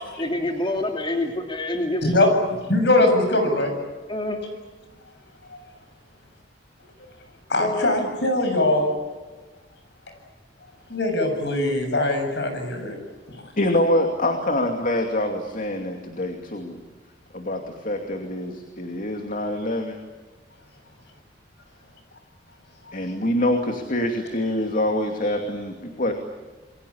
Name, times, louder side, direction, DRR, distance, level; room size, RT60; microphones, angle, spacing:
voice 1, 0.0-2.3 4.1-4.4 7.6-8.1, left 1 dB, 30° left, 3 dB, 2.7 m, -27 dB
voice 2, 2.0-3.7 5.5-5.6 7.5-9.0 10.9-13.0 13.3-13.4 22.9-23.0, left 2 dB, 65° left, 6 dB, 7.3 m, -22 dB
voice 3, 13.6-16.8 17.3-20.0 22.9-26.1, left 1 dB, 45° left, 4 dB, 2.6 m, -25 dB
28.5 x 23.0 x 8.6 m, 1.3 s
head